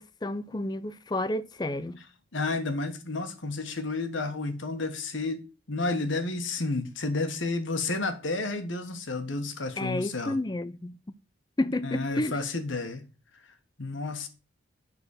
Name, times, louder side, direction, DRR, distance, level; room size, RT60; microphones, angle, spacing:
voice 1, 0.0-2.0 9.8-11.0 11.6-12.4, left 1 dB, 20° left, 0.4 m, -31 dB
voice 2, 2.3-5.4 5.7-10.4 11.8-13.0 13.8-14.3, left 3 dB, 85° left, 1.3 m, -31 dB
9.8 x 4.0 x 6.5 m
head